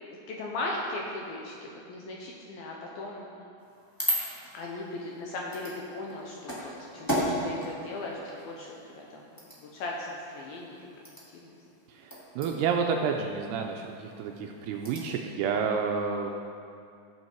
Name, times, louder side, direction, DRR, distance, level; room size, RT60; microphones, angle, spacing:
voice 1, 0.3-3.3 4.5-9.0 9.6-10.8 11.3-11.5, left 2 dB, 75° left, -1 dB, 2.3 m, -37 dB
sound 1, 3.6-15.2, right 1 dB, 15° left, 0.6 m, -37 dB
voice 2, 11.9-16.3, right 6 dB, 80° right, 2 dB, 2.5 m, -30 dB
15.0 x 7.8 x 4.6 m, 2.4 s
omnidirectional pair, 5.1 m